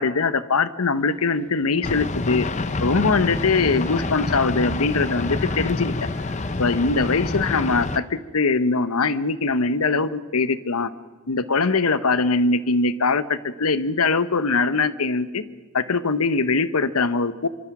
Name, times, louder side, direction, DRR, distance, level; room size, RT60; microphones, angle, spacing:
voice 1, 0.0-2.5 2.8-5.9 6.6-10.9 11.3-15.4 15.7-17.5, left 4 dB, 80° left, 14 dB, 0.9 m, -22 dB
sound 1, 0.9-8.0, right 1 dB, 5° left, 3.3 m, -46 dB
sound 2, 1.8-8.0, left 3 dB, 30° left, 0.6 m, -27 dB
25.5 x 24.5 x 6.0 m, 1.3 s
head